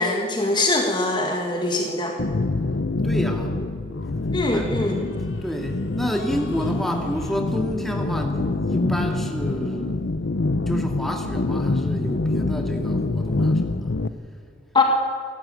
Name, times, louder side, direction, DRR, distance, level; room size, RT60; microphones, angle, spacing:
voice 1, 0.0-2.2 4.3-5.1 14.7-14.8, left 2 dB, 25° left, 2 dB, 1.6 m, -22 dB
sound 1, 2.2-14.1, left 2 dB, 70° left, 0.7 m, -25 dB
voice 2, 3.0-3.5 4.5-4.7 5.4-10.0 10.7-13.9, equal, ahead, 2 dB, 2.2 m, -29 dB
29.0 x 13.0 x 9.2 m, 2.4 s
head